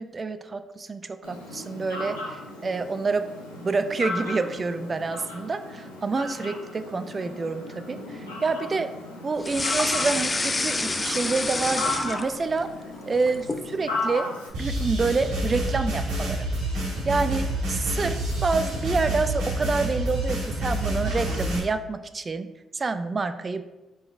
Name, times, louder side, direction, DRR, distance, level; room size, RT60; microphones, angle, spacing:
voice 1, 0.0-3.3 3.6-8.9 9.2-12.7 13.1-14.3 14.6-16.5 17.1-23.6, right 4 dB, 35° right, 10 dB, 0.3 m, -28 dB
Fowl, 1.2-14.5, left 2 dB, 85° left, 0.7 m, -36 dB
sound 1, 9.4-12.6 13.0-13.7, left 2 dB, 30° left, 0.4 m, -27 dB
sound 2, 14.5-21.6, right 1 dB, 70° right, 1.3 m, -28 dB
4.9 x 3.9 x 2.4 m, 1.0 s
figure-of-eight pair, 40°, 0 cm